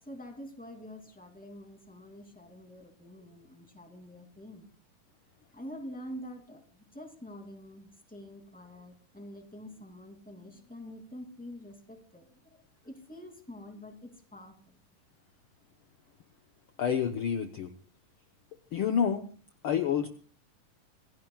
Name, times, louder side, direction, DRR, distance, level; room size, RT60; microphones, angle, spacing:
voice 1, 0.0-4.7 5.5-14.8, equal, 5° left, 3 dB, 2.4 m, -46 dB
voice 2, 16.8-17.7 18.7-19.3 19.6-20.1, left 8 dB, 70° left, 6 dB, 1.3 m, -28 dB
26.5 x 17.5 x 2.4 m, 0.41 s
omnidirectional pair, 3.7 m